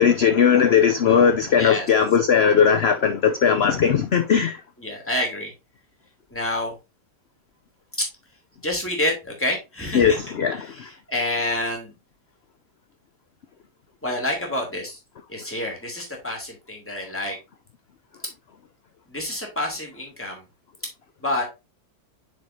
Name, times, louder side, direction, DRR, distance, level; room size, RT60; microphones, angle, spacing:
voice 1, 0.0-4.6 9.9-10.9, left 7 dB, 85° left, 0.5 m, -18 dB
voice 2, 4.8-5.5 6.3-6.7 8.6-10.2 10.5-11.9 14.0-15.0 15.3-17.4 19.1-20.4 21.2-21.4, left 1 dB, 5° left, 2.5 m, -28 dB
8.5 x 4.8 x 2.7 m
omnidirectional pair, 1.8 m